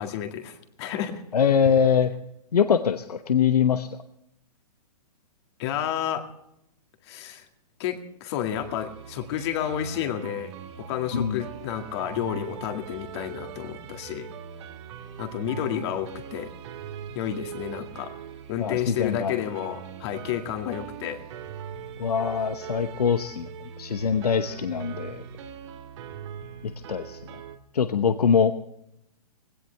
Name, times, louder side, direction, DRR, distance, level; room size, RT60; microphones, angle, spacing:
voice 1, 0.0-1.2 5.6-6.3 7.0-7.5 7.8-14.3 15.2-16.5 17.1-18.1 18.5-21.2, left 10 dB, 40° left, 5 dB, 2.1 m, -31 dB
voice 2, 1.3-2.1 2.5-3.9 11.1-11.4 18.6-19.3 22.0-23.5 23.8-25.2 26.9-27.2 27.7-28.5, left 7 dB, 75° left, 9 dB, 1.0 m, -23 dB
sound 1, 8.6-27.6, right 8 dB, 45° right, 1.6 m, -41 dB
20.0 x 17.0 x 3.4 m, 0.78 s
hypercardioid pair, 125°, 20 cm